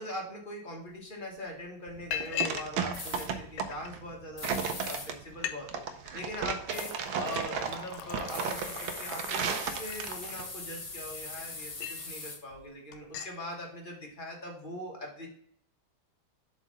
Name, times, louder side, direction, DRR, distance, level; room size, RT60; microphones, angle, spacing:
voice 1, 0.0-5.8 6.1-15.3, equal, 30° left, -1 dB, 1.4 m, -41 dB
Liquid, 0.9-1.0 1.4-1.6 2.1-2.7 3.0-3.9 4.6-4.7 5.0-5.1 5.3-5.6 5.9-6.3 6.8-10.6 11.1-12.1 12.5-12.7 12.9-13.4, left 10 dB, 75° left, 1.4 m, -40 dB
sound 1, 1.9-10.5, right 6 dB, 80° right, 1.5 m, -35 dB
sound 2, 2.9-3.3 4.4-5.1 6.7-6.9 8.3-12.4, left 3 dB, 50° left, 0.4 m, -41 dB
7.3 x 4.3 x 3.9 m, 0.64 s
omnidirectional pair, 2.2 m